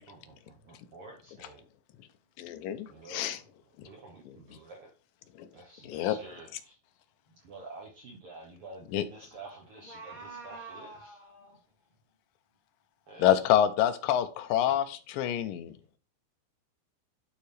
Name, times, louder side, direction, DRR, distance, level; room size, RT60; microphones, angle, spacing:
voice 1, 0.0-1.6 2.9-3.4 3.8-4.9 5.5-6.8 7.4-11.2 13.1-13.3, right 3 dB, 80° right, 1.2 m, -49 dB
voice 2, 2.4-3.4 4.3-4.4 5.4-5.5 5.8-6.2 8.9-9.1 13.2-15.8, left 11 dB, 80° left, 2.3 m, -27 dB
voice 3, 9.8-11.6 15.3-15.5, right 3 dB, 15° left, 2.5 m, -46 dB
11.5 x 4.6 x 3.3 m
omnidirectional pair, 4.3 m